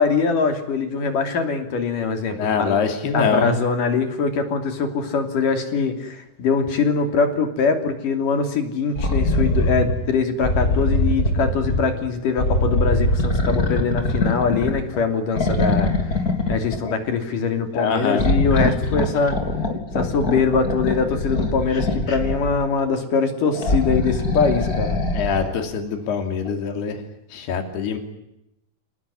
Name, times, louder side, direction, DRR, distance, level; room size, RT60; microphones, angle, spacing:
voice 1, 0.0-2.8 3.1-16.1 16.5-19.4 19.9-25.0, left 5 dB, 55° left, 6 dB, 4.4 m, -22 dB
voice 2, 2.3-3.6 17.7-18.3 25.1-27.0 27.3-28.0, left 5 dB, 80° left, 6 dB, 4.8 m, -23 dB
sound 1, 9.0-9.9 10.4-11.9 12.4-15.0 15.4-16.9 18.1-22.6 23.5-25.5 26.5-26.6, left 1 dB, 25° left, 3.7 m, -22 dB
28.0 x 19.5 x 9.9 m, 0.86 s
omnidirectional pair, 4.6 m